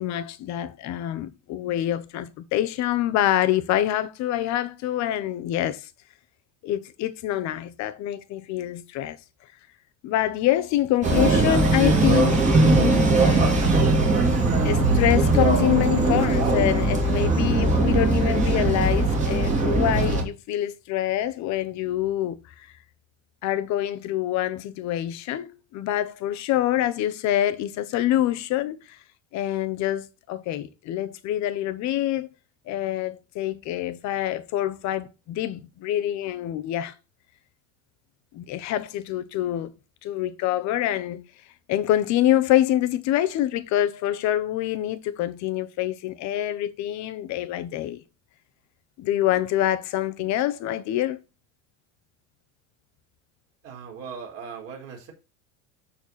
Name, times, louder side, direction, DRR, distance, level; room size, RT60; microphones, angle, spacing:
voice 1, 0.0-5.9 6.6-9.2 10.0-13.6 14.6-22.4 23.4-29.0 29.3-32.3 32.7-36.9 38.3-39.7 40.0-41.2 41.7-48.0 49.0-51.2, left 12 dB, 45° left, 1.2 m, -26 dB
sound 1, 11.0-20.2, right 2 dB, 20° right, 2.8 m, -20 dB
voice 2, 53.6-55.1, right 6 dB, 35° right, 4.2 m, -39 dB
13.0 x 4.6 x 4.3 m
cardioid pair, 160°, 38 cm